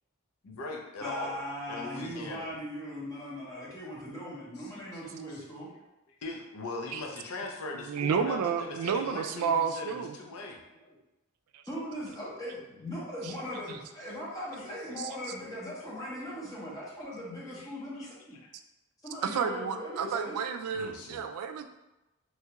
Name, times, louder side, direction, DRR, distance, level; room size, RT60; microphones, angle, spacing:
voice 1, 0.4-1.4 1.7-2.5 4.6-5.0 5.3-5.4 6.1-10.6 15.1-15.2 17.5-18.5 20.7-21.2, left 2 dB, 85° left, 1 dB, 0.6 m, -40 dB
voice 2, 1.0-5.7 9.9-10.0 10.9-11.0 11.7-18.4 19.0-20.4, equal, 15° left, -8 dB, 0.6 m, -39 dB
voice 3, 7.9-10.1 13.2-13.3 15.0-15.1 19.2-21.7, right 6 dB, 90° right, 11 dB, 0.3 m, -30 dB
3.1 x 2.3 x 2.8 m, 0.96 s
head